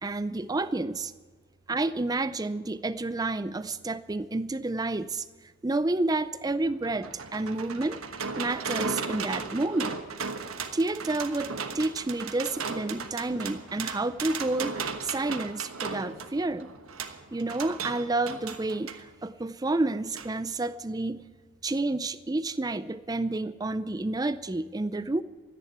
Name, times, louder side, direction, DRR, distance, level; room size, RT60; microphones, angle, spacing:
voice 1, 0.0-1.1 1.7-5.3 5.6-8.0 8.4-10.0 10.7-16.7 17.3-21.3 21.6-25.2, right 2 dB, 15° right, 14 dB, 0.4 m, -30 dB
sound 1, 6.5-19.0 20.2-20.3 20.6-20.7, right 5 dB, 75° right, 1.2 m, -36 dB
14.0 x 10.0 x 8.8 m, 1.4 s
head